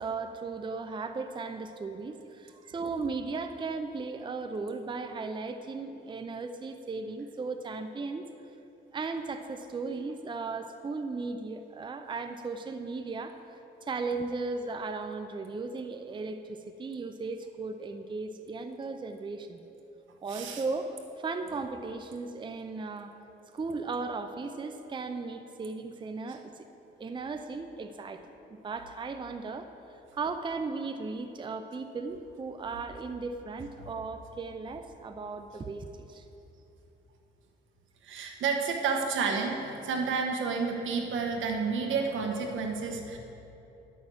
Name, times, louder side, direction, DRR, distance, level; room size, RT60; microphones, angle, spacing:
voice 1, 0.0-8.3 8.9-13.4 13.8-19.6 20.2-23.1 23.5-26.5 27.0-28.2 28.5-29.7 30.1-36.3, right 4 dB, 25° right, 7 dB, 0.5 m, -36 dB
voice 2, 20.3-20.6 38.0-43.2, right 5 dB, 80° right, 2 dB, 1.4 m, -30 dB
11.0 x 6.3 x 7.6 m, 2.9 s
cardioid pair, 90°, 20 cm